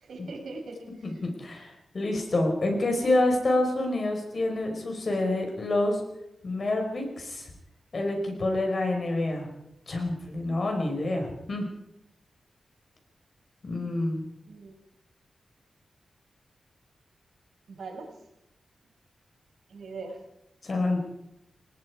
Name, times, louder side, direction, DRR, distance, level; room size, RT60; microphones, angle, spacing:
voice 1, 0.0-0.8 14.5-14.7 17.7-18.1 19.7-20.2, right 3 dB, 75° right, 2 dB, 6.1 m, -40 dB
voice 2, 1.0-6.0 6.4-7.5 7.9-9.5 9.9-11.7 13.6-14.2 20.6-21.0, left 2 dB, 40° left, 3 dB, 5.2 m, -27 dB
29.0 x 18.5 x 4.9 m, 0.85 s
wide cardioid pair, 175°, 0 cm